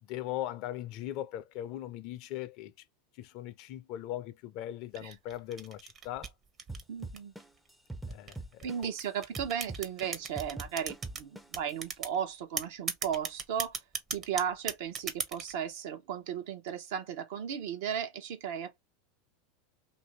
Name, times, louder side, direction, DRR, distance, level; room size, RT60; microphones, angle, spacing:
voice 1, 0.0-2.7 3.1-6.3 8.1-8.9, left 13 dB, 55° left, 0.5 m, -39 dB
sound 1, 4.9-7.4 8.1-11.2 11.5-12.2 12.6-15.5, right 5 dB, 35° right, 0.7 m, -37 dB
sound 2, 6.7-9.0 9.4-11.7, right 2 dB, 5° right, 0.5 m, -42 dB
voice 2, 6.9-7.3 8.6-13.8 14.1-18.8, right 8 dB, 70° right, 0.7 m, -35 dB
2.6 x 2.6 x 3.0 m
hypercardioid pair, 100°, 0 cm